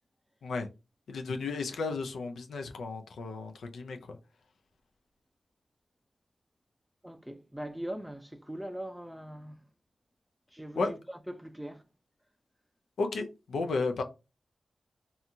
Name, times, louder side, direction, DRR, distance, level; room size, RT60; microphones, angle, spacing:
voice 1, 1.1-4.2 10.8-10.9 13.0-14.0, left 3 dB, 90° left, 0.4 m, -33 dB
voice 2, 7.0-9.6 10.5-11.0 11.3-11.8, right 1 dB, 5° right, 0.4 m, -41 dB
2.7 x 2.3 x 2.6 m
cardioid pair, 50°, 0 cm